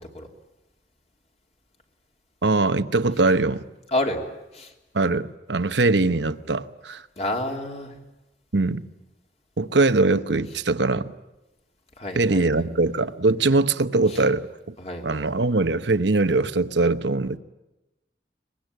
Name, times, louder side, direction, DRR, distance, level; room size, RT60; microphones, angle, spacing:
voice 1, 2.4-3.6 4.9-7.0 8.5-8.8 9.6-11.1 12.2-14.7 15.0-17.4, right 3 dB, 80° right, 1.0 m, -22 dB
voice 2, 3.9-4.2 4.5-4.7 7.2-8.0 12.0-12.6 14.1-14.2 14.8-15.2, left 1 dB, 35° left, 3.0 m, -29 dB
23.5 x 21.5 x 9.2 m
head